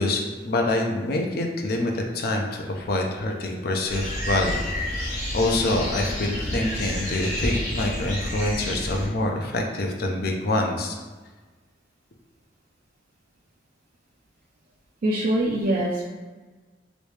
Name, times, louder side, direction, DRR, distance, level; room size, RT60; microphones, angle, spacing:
voice 1, 0.0-4.6 4.9-11.0, left 2 dB, 60° left, 2 dB, 0.5 m, -26 dB
sound 1, 3.9-9.1, left 1 dB, 40° left, 0.9 m, -30 dB
voice 2, 15.0-16.0, right 1 dB, 50° right, -4 dB, 0.4 m, -23 dB
3.1 x 2.6 x 3.2 m, 1.3 s
head